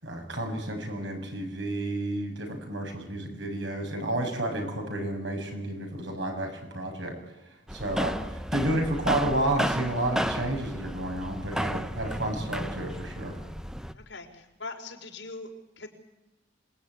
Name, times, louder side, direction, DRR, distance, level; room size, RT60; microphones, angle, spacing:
voice 1, 0.0-7.1 7.7-13.4, right 1 dB, 80° right, 3 dB, 6.9 m, -31 dB
sound 1, 7.7-13.9, equal, 5° right, 0.9 m, -33 dB
voice 2, 13.9-15.5 15.8-15.9, left 3 dB, 80° left, 3 dB, 4.5 m, -41 dB
27.0 x 20.0 x 9.6 m, 0.98 s
head